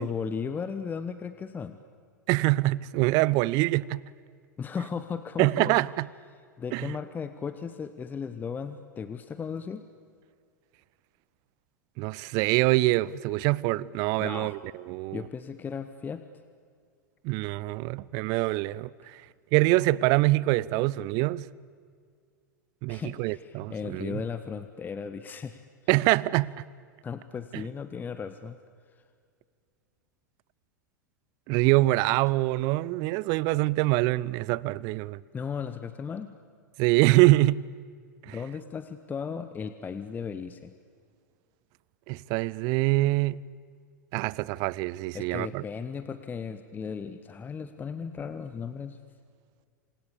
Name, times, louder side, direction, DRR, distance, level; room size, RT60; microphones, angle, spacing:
voice 1, 0.0-1.8 4.6-5.8 6.6-9.8 14.2-14.6 15.1-16.2 22.9-25.6 27.0-28.6 35.3-36.3 38.3-40.8 45.1-49.0, left 6 dB, 20° left, 1.1 m, -36 dB
voice 2, 2.3-4.0 5.4-6.1 6.7-6.9 12.0-14.6 14.9-15.3 17.2-19.2 19.5-21.5 22.8-24.2 25.9-26.5 27.5-27.6 31.5-35.2 36.8-37.6 38.3-38.4 42.1-43.4 44.1-45.6, right 19 dB, 40° right, 0.6 m, -25 dB
28.5 x 27.0 x 7.1 m
figure-of-eight pair, 90°, 10 cm